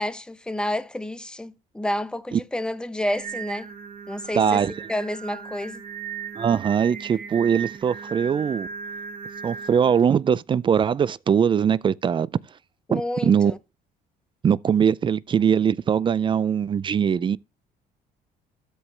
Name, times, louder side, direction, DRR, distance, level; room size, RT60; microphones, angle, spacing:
voice 1, 0.0-3.7 4.1-4.6 4.9-5.8 12.9-13.6, left 1 dB, 5° left, 0.7 m, -29 dB
Singing, 3.0-10.0, right 6 dB, 60° right, 2.6 m, -37 dB
voice 2, 4.3-4.7 6.4-8.7 9.4-12.3 12.9-13.5 14.4-17.4, right 7 dB, 30° right, 0.3 m, -21 dB
13.0 x 4.9 x 3.2 m
cardioid pair, 110°, 17 cm